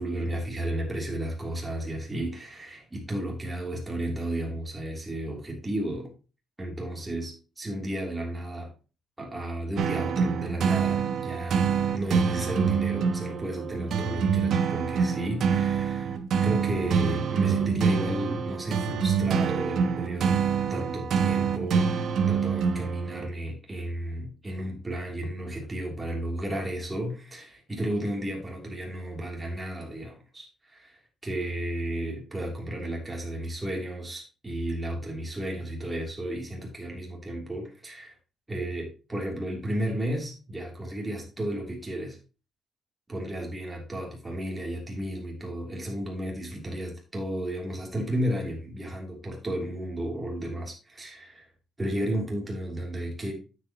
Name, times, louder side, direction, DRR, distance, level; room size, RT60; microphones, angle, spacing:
voice 1, 0.0-6.1 6.6-8.7 9.2-16.2 16.4-20.3 20.7-21.9 22.3-38.1 38.5-42.2 43.1-51.5 51.8-53.3, right 1 dB, 15° right, -1 dB, 3.1 m, -33 dB
sound 1, 9.8-23.3, right 6 dB, 65° right, 0.9 m, -26 dB
9.2 x 7.4 x 3.0 m, 0.33 s
cardioid pair, 90°, 0 cm